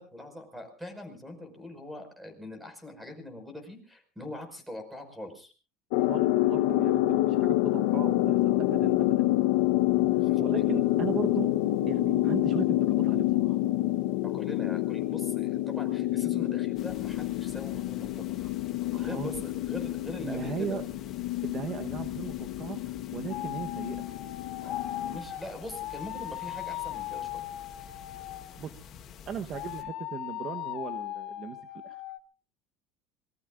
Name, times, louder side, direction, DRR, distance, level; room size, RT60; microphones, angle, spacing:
voice 1, 0.0-5.5 10.0-10.7 14.2-18.5 18.8-20.8 24.6-24.7 25.1-27.4, left 1 dB, 5° right, 8 dB, 5.3 m, -42 dB
sound 1, 5.9-25.2, left 15 dB, 75° left, 0.9 m, -27 dB
voice 2, 6.0-9.2 10.4-11.5 11.9-13.6 18.4-18.5 18.9-19.4 20.2-20.8 21.4-22.8 23.1-24.0 28.1-28.2 28.6-28.7 29.3-31.6 31.8-32.0, right 7 dB, 40° right, 8 dB, 1.0 m, -37 dB
sound 2, 16.8-29.8, left 9 dB, 40° left, 2.0 m, -45 dB
sound 3, 23.3-25.0 25.7-28.6 29.5-32.2, left 14 dB, 60° left, 1.8 m, -39 dB
26.5 x 20.5 x 2.5 m, 0.35 s
supercardioid pair, 135°, 0 cm